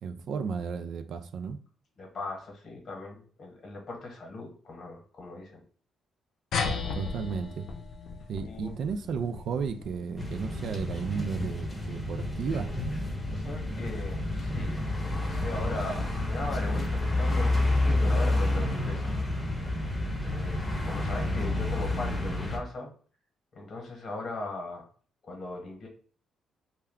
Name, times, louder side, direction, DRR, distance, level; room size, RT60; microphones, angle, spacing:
voice 1, 0.0-1.6 6.9-7.7 8.3-12.7, right 6 dB, 70° right, 8 dB, 0.3 m, -33 dB
voice 2, 2.0-5.6 8.4-8.8 13.3-19.1 20.2-22.9 23.5-24.9 25.2-25.9, left 2 dB, 55° left, 2 dB, 1.0 m, -39 dB
sound 1, 6.5-11.4, left 5 dB, 70° left, 0.4 m, -36 dB
sound 2, 10.2-22.6, left 2 dB, 15° left, 0.8 m, -29 dB
2.2 x 2.2 x 3.5 m, 0.43 s
cardioid pair, 85°, 0 cm